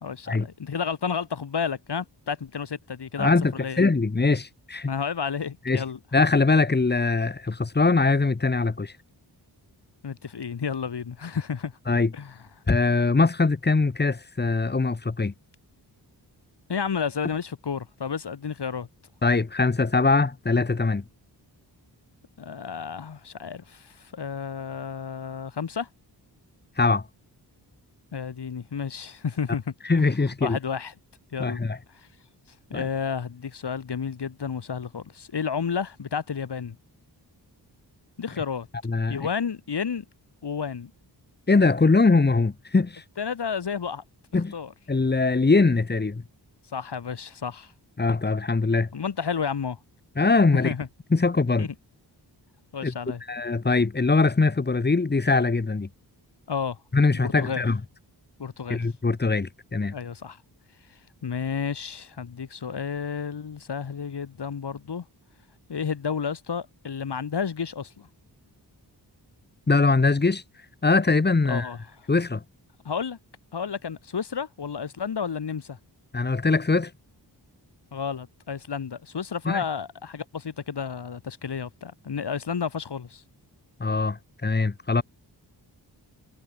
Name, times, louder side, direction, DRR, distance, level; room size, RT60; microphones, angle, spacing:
voice 1, 0.0-3.8 4.9-6.0 10.0-11.7 12.1-12.3 16.7-18.9 22.4-25.9 28.1-30.0 30.4-30.9 31.3-31.6 31.9-32.1 32.7-36.8 38.2-38.7 39.1-40.0 40.4-40.9 43.2-44.0 44.5-44.7 46.7-47.7 48.9-49.8 50.5-50.9 51.6-51.7 52.7-53.2 56.5-56.8 57.1-57.6 58.4-58.8 59.9-60.4 61.2-65.0 65.7-68.1 71.5-71.8 72.8-73.2 73.5-75.8 77.9-83.2, left 6 dB, 70° left, 3.0 m, -31 dB
voice 2, 3.2-4.9 5.7-5.8 6.1-8.9 11.9-12.1 12.7-15.3 19.2-21.0 26.8-27.0 29.8-30.6 31.4-31.8 32.7-32.9 38.8-39.3 41.5-43.0 44.3-44.5 44.9-46.2 48.0-48.9 50.2-50.7 51.1-51.7 52.8-52.9 53.3-55.9 56.9-57.8 58.7-59.9 69.7-70.4 70.8-71.7 72.1-72.4 76.1-76.9 79.4-79.6 83.8-85.0, left 3 dB, 25° left, 1.3 m, -22 dB
wide cardioid pair, 130°, 42 cm